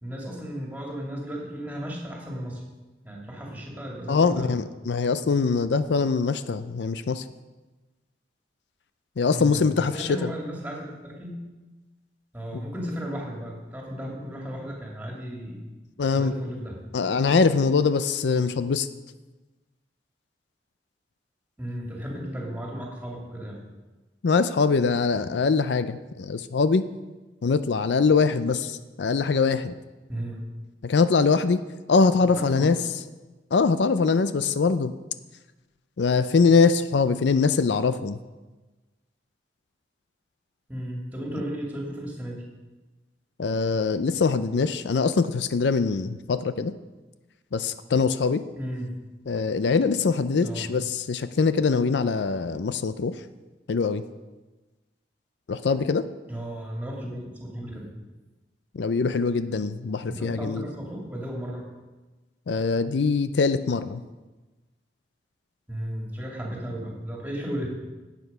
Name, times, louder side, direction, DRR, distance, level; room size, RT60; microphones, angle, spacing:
voice 1, 0.0-2.6 3.0-4.6 9.3-11.4 12.3-15.7 16.1-16.8 21.6-23.6 30.1-30.5 32.4-32.7 40.7-42.4 48.5-48.9 50.4-50.7 56.3-57.9 60.1-61.7 65.7-67.7, equal, 10° right, -2 dB, 2.4 m, -34 dB
voice 2, 4.1-7.2 9.2-10.3 12.5-12.6 16.0-16.3 16.9-18.9 24.2-26.8 27.4-29.8 30.8-31.6 31.9-32.8 33.5-34.9 36.0-38.2 43.4-46.7 47.5-48.4 49.3-53.2 53.7-54.0 55.5-56.1 58.7-60.6 62.5-64.0, left 4 dB, 70° left, 12 dB, 0.5 m, -23 dB
11.5 x 8.2 x 5.5 m, 1.2 s
head